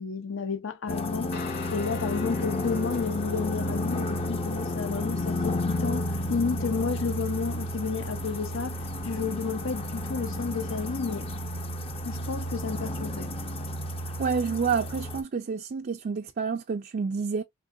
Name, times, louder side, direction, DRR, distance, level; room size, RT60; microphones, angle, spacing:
voice 1, 0.0-1.4 1.7-11.3 12.0-13.3, left 5 dB, 65° left, 0.7 m, -31 dB
sound 1, 0.9-15.2, left 1 dB, 30° left, 0.6 m, -32 dB
Guitar, 1.3-9.5, left 5 dB, 50° left, 2.2 m, -42 dB
voice 2, 14.2-17.4, right 5 dB, 45° right, 0.4 m, -29 dB
3.6 x 2.9 x 2.5 m
head